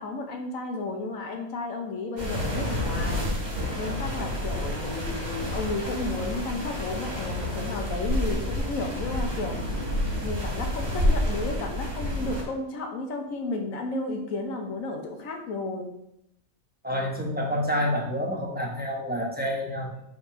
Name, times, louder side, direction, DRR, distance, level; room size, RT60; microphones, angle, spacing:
voice 1, 0.0-3.3 3.7-9.6 10.2-15.9, left 2 dB, 85° left, 3 dB, 1.4 m, -33 dB
sound 1, 2.2-12.4, left 1 dB, 35° right, 1.5 m, -29 dB
voice 2, 16.8-20.0, equal, 10° right, -2 dB, 0.9 m, -28 dB
5.2 x 3.6 x 5.0 m, 0.77 s
omnidirectional pair, 1.4 m